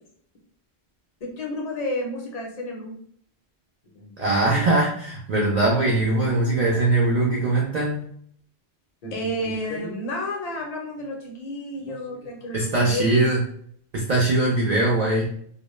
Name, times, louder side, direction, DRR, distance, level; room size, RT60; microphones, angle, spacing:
voice 1, 1.2-2.9 3.9-4.7 9.0-13.0, left 1 dB, 45° left, 0 dB, 0.6 m, -31 dB
voice 2, 4.2-8.1 12.5-13.4 13.9-15.3, right 2 dB, 55° right, -3 dB, 0.5 m, -21 dB
2.1 x 2.1 x 3.0 m, 0.64 s
omnidirectional pair, 1.1 m